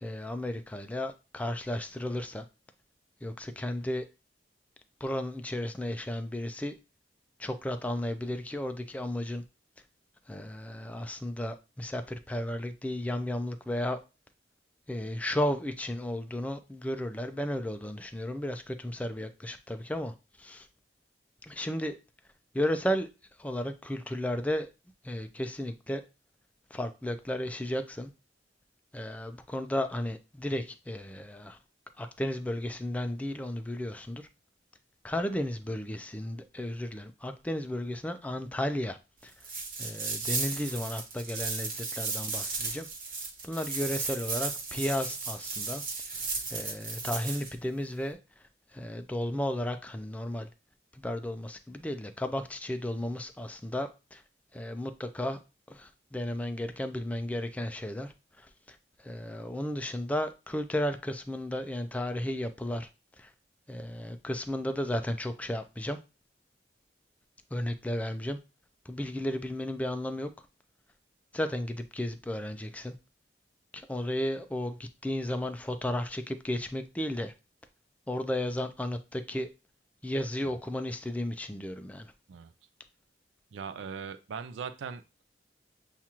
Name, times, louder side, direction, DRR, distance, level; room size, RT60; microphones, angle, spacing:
voice 1, 0.0-2.4 3.2-4.0 5.0-6.7 7.4-9.4 10.3-14.0 14.9-20.7 21.4-22.0 22.5-23.1 23.4-24.7 25.0-26.0 26.7-28.1 28.9-31.6 32.0-34.3 35.0-39.0 39.2-39.3 39.8-42.9 43.4-45.8 46.5-48.2 48.7-50.5 50.9-54.2 54.5-55.4 55.7-62.9 63.2-63.3 63.7-66.0 67.5-68.4 68.9-70.3 71.3-72.9 73.7-77.3 78.1-79.5 80.0-82.1, left 1 dB, 10° left, 0.3 m, -34 dB
sound 1, 39.4-47.5, right 4 dB, 45° right, 1.2 m, -35 dB
voice 2, 83.5-85.2, right 6 dB, 85° right, 0.4 m, -40 dB
7.2 x 2.4 x 2.9 m
head